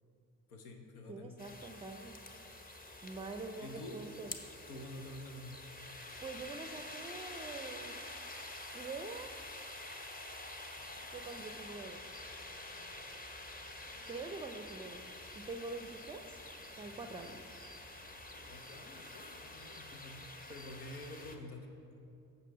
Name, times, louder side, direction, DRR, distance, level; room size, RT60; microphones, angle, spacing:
voice 1, 0.5-1.3 3.6-4.0 4.7-5.6 18.4-21.7, left 1 dB, 85° left, 4 dB, 0.7 m, -48 dB
voice 2, 1.1-2.2 3.0-4.3 6.2-7.9 8.7-9.3 11.1-12.0 14.1-15.0 15.4-16.4 16.8-17.5, right 3 dB, 15° right, 6 dB, 0.4 m, -45 dB
sound 1, 1.4-21.4, left 2 dB, 20° left, 0.9 m, -48 dB
sound 2, 10.7-18.5, left 1 dB, 55° left, 1.9 m, -64 dB
8.4 x 6.7 x 4.7 m, 2.7 s
figure-of-eight pair, 45°, 44 cm